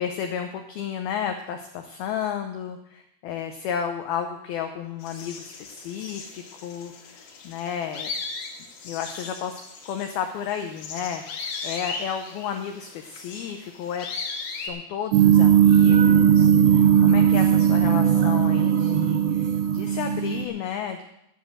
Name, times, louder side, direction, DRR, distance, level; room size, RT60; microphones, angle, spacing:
voice 1, 0.0-8.1 8.8-14.1 14.6-21.0, left 8 dB, 85° left, 5 dB, 2.1 m, -32 dB
sound 1, 5.0-14.7, left 4 dB, 60° left, 3.2 m, -37 dB
sound 2, 15.1-20.5, right 8 dB, 75° right, 2.8 m, -18 dB
12.5 x 7.3 x 7.5 m, 0.79 s
omnidirectional pair, 5.4 m